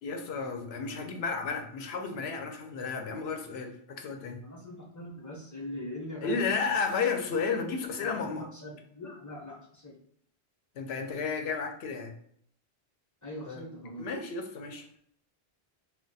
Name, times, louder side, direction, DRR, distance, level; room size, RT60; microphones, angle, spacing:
voice 1, 0.0-4.4 6.2-8.5 10.8-12.1 13.5-13.6 14.0-14.9, left 5 dB, 85° left, 4 dB, 0.8 m, -32 dB
voice 2, 4.4-6.7 8.0-9.9 13.2-14.1, left 1 dB, 20° left, -3 dB, 0.6 m, -42 dB
2.3 x 2.2 x 3.9 m, 0.66 s
omnidirectional pair, 1.0 m